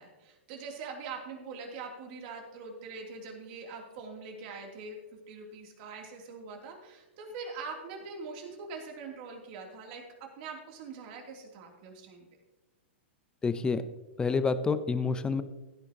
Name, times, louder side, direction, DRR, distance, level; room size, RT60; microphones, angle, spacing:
voice 1, 0.0-5.0 5.3-10.0 10.4-12.3, right 4 dB, 50° right, 1 dB, 3.1 m, -43 dB
voice 2, 13.4-13.8 14.2-15.4, left 4 dB, 15° left, 12 dB, 0.7 m, -28 dB
16.0 x 10.0 x 3.0 m, 1.1 s
hypercardioid pair, 125°, 7 cm